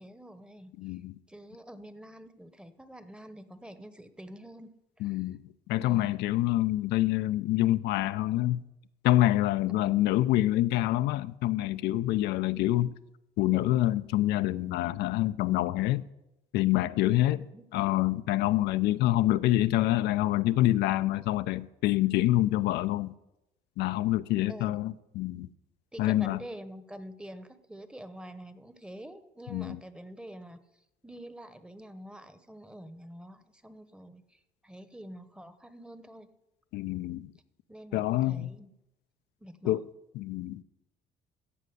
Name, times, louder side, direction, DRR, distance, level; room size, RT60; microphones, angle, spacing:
voice 1, 0.0-1.0 1.3-5.2 5.8-6.2 9.7-10.0 17.2-17.6 24.5-25.0 25.9-30.6 31.0-36.3 37.7-38.7 39.4-39.8, equal, 5° right, 0.9 m, -47 dB
voice 2, 0.8-1.2 5.0-8.6 9.0-12.9 13.4-16.1 16.5-17.4 17.7-23.1 23.8-25.5 26.0-26.4 29.5-29.8 36.7-37.3 37.9-38.5 39.6-39.8 40.1-40.6, left 15 dB, 85° left, 0.5 m, -26 dB
14.5 x 5.2 x 9.3 m
cardioid pair, 110°, 17 cm